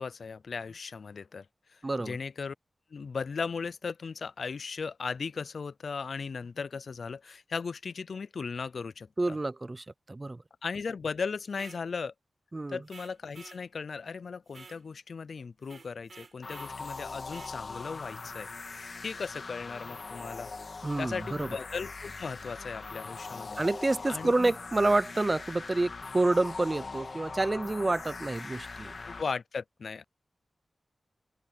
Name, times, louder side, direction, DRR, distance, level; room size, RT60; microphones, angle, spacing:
voice 1, 0.0-2.5 2.9-9.4 10.6-12.1 12.7-18.5 19.0-20.5 21.0-23.6 24.1-24.5 29.1-30.0, left 5 dB, 75° left, 0.4 m, -37 dB
voice 2, 1.8-2.2 9.2-10.4 12.5-12.8 20.8-21.5 23.6-28.9, right 2 dB, 30° right, 0.5 m, -28 dB
sound 1, 11.5-11.8 12.9-13.6 14.5-14.8 15.6-16.8 17.3-17.6, right 4 dB, 65° right, 4.9 m, -51 dB
sound 2, 16.4-29.2, left 4 dB, 60° left, 1.9 m, -41 dB
wide cardioid pair, 70°, 0 cm